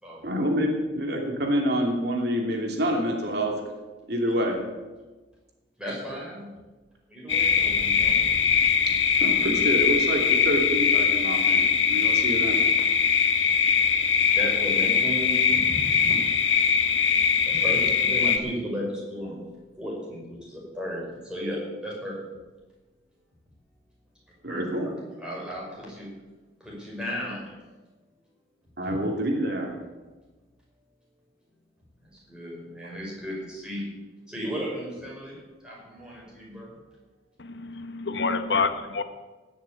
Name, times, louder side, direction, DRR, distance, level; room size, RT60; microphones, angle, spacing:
voice 1, 0.2-3.6 4.1-4.6 9.2-12.7 24.4-24.9 28.8-29.7, equal, 60° right, 1 dB, 2.8 m, -27 dB
voice 2, 5.8-6.5 7.1-8.2 13.9-14.0 14.3-16.1 17.5-19.4 19.8-22.2 24.5-24.9 25.2-26.1 26.6-27.5 28.8-29.0 32.3-33.9 34.3-36.8, equal, 5° right, -5 dB, 5.7 m, -35 dB
sound 1, 7.3-18.4, left 6 dB, 90° left, 1.4 m, -22 dB
voice 3, 37.4-39.0, left 4 dB, 65° left, 10 dB, 1.0 m, -27 dB
18.0 x 7.2 x 8.6 m, 1.2 s
head